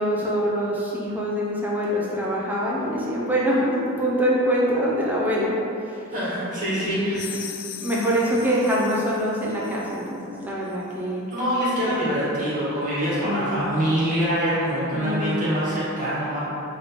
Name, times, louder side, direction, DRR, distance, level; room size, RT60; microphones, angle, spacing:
voice 1, 0.0-5.5 5.8-6.1 6.8-7.2 7.8-11.3 11.8-12.0 13.2-13.7 14.9-15.4, equal, 10° right, -6 dB, 0.5 m, -24 dB
voice 2, 6.1-7.3 11.3-16.4, equal, 40° right, -9 dB, 1.2 m, -25 dB
sound 1, 7.1-10.1, left 9 dB, 75° left, 0.3 m, -39 dB
3.2 x 3.1 x 4.0 m, 2.7 s
head